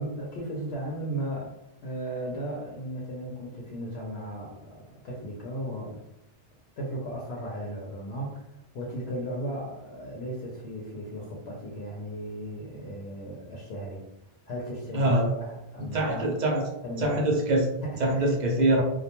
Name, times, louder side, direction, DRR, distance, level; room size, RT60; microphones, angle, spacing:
voice 1, 0.0-1.5 1.8-6.0 6.8-8.5 8.7-14.0 14.5-16.3 16.8-17.2 17.8-18.3 18.6-18.7, right 1 dB, 85° left, -2 dB, 0.9 m, -36 dB
voice 2, 14.9-15.4 15.8-16.7 17.0-17.7 18.0-18.8, right 1 dB, 55° right, 0 dB, 0.5 m, -24 dB
2.2 x 2.2 x 2.8 m, 0.87 s
omnidirectional pair, 1.0 m